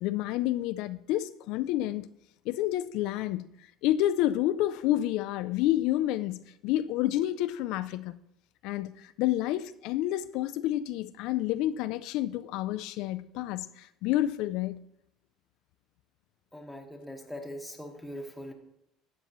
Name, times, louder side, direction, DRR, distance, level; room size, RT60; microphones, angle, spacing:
voice 1, 0.0-2.1 2.5-8.2 8.6-14.8, left 14 dB, 70° left, 0.3 m, -29 dB
voice 2, 16.5-18.5, equal, ahead, 1.4 m, -41 dB
12.0 x 8.1 x 3.0 m
cardioid pair, 130°, 0 cm